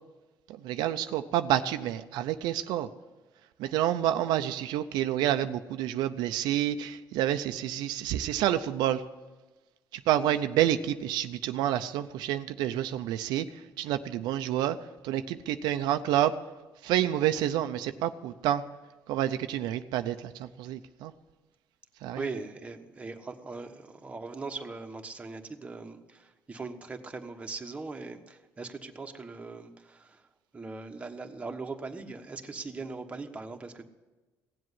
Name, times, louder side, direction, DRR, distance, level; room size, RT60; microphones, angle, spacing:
voice 1, 0.5-2.9 3.6-9.0 9.9-14.8 15.0-16.4 16.8-18.6 19.1-21.1 22.0-22.2, right 12 dB, 85° right, 9 dB, 0.6 m, -28 dB
voice 2, 22.1-30.2 30.5-33.8, right 3 dB, 20° right, 4 dB, 1.2 m, -40 dB
17.0 x 7.7 x 9.7 m, 1.2 s
cardioid pair, 120°, 7 cm